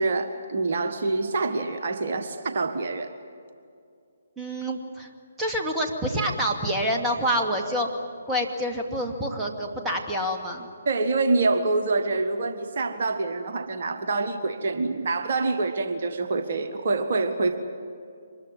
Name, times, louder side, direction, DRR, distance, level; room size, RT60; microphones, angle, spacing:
voice 1, 0.0-3.1 10.8-17.6, right 3 dB, 50° right, 6 dB, 1.6 m, -26 dB
voice 2, 4.4-5.1 5.4-7.9 8.3-10.7, equal, 10° right, 0 dB, 2.2 m, -27 dB
24.5 x 21.0 x 9.9 m, 2.4 s
figure-of-eight pair, 135°, 0 cm